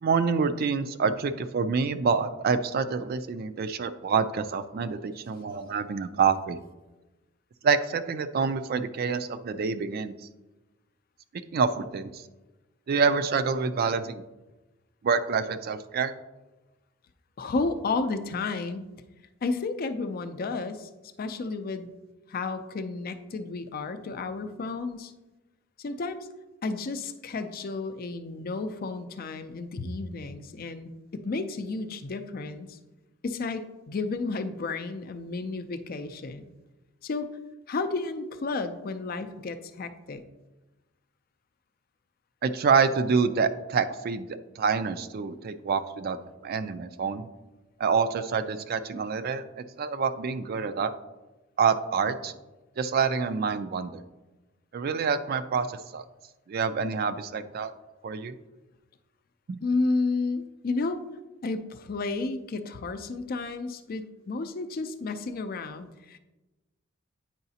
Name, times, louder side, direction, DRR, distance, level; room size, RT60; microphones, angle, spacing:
voice 1, 0.0-6.6 7.6-10.1 11.3-12.2 12.9-14.2 15.0-16.1 42.4-46.2 46.4-47.3 47.8-50.9 51.6-52.3 52.8-54.0 54.7-56.0 56.5-57.7 58.0-58.4 59.5-59.6, right 5 dB, 50° right, 11 dB, 0.4 m, -27 dB
voice 2, 17.4-18.9 19.4-20.9 21.2-21.9 22.3-25.1 25.8-26.3 26.6-32.8 33.2-36.5 37.0-37.3 37.7-40.2 59.6-61.0 61.4-66.2, left 3 dB, 50° left, 9 dB, 0.4 m, -32 dB
8.9 x 4.8 x 2.8 m, 1.1 s
head